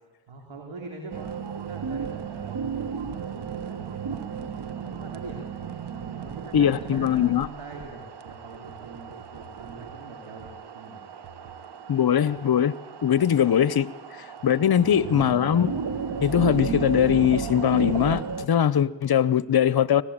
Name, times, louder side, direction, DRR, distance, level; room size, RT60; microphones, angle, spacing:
voice 1, 0.3-11.1 11.5-11.7 14.4-14.8, right 3 dB, 70° right, 1 dB, 3.7 m, -44 dB
sound 1, 1.1-18.5, right 6 dB, 55° right, 1.5 m, -34 dB
voice 2, 6.5-7.5 11.9-12.7 13.0-13.9 14.4-15.7 16.2-20.0, left 9 dB, 50° left, 19 dB, 0.8 m, -21 dB
24.0 x 18.5 x 8.8 m, 1.3 s
cardioid pair, 75°, 48 cm